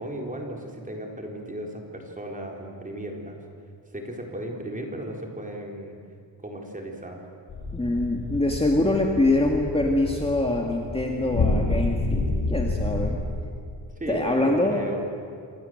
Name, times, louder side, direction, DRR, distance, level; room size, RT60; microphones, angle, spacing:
voice 1, 0.0-3.4 3.9-6.0 6.4-7.2 14.0-15.0, right 1 dB, 20° right, 1 dB, 4.1 m, -35 dB
sound 1, 7.5-13.2, left 2 dB, 70° left, 7.5 m, -28 dB
voice 2, 7.7-12.2 12.5-13.2 14.1-14.9, left 2 dB, 15° left, 1 dB, 2.0 m, -24 dB
28.0 x 26.5 x 7.9 m, 2.2 s
wide cardioid pair, 165°, 44 cm